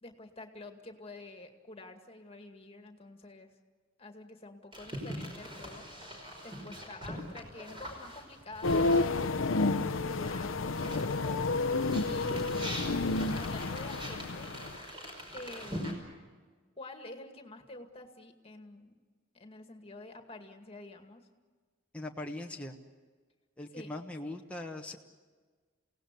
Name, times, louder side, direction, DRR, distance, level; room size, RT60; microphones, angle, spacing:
voice 1, 0.0-3.5 4.0-5.9 6.4-11.2 12.1-12.9 13.3-14.5 15.3-16.0 16.8-19.0 19.3-21.3 23.7-23.9, left 2 dB, 30° left, 5 dB, 2.1 m, -48 dB
sound 1, 4.7-10.1 10.5-15.9, equal, 25° right, 5.4 m, -43 dB
sound 2, 8.6-14.8, left 3 dB, 80° left, 0.8 m, -30 dB
voice 2, 21.9-22.8 23.6-25.0, left 2 dB, 5° left, 0 dB, 1.2 m, -40 dB
29.0 x 18.0 x 8.3 m, 1.5 s
head